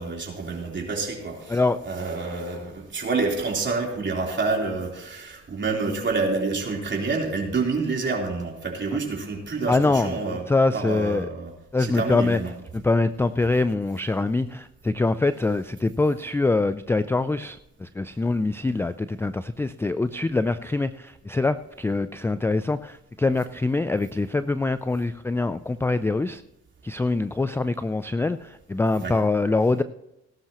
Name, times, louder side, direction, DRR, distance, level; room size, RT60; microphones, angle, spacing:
voice 1, 0.0-10.4 10.7-11.5 11.8-12.5 29.0-29.2, right 4 dB, 40° right, 0 dB, 3.7 m, -28 dB
voice 2, 9.7-11.3 11.7-12.4 12.7-26.4 26.8-29.8, left 3 dB, 10° left, 13 dB, 0.3 m, -24 dB
18.5 x 11.5 x 3.0 m, 0.88 s
cardioid pair, 90°, 30 cm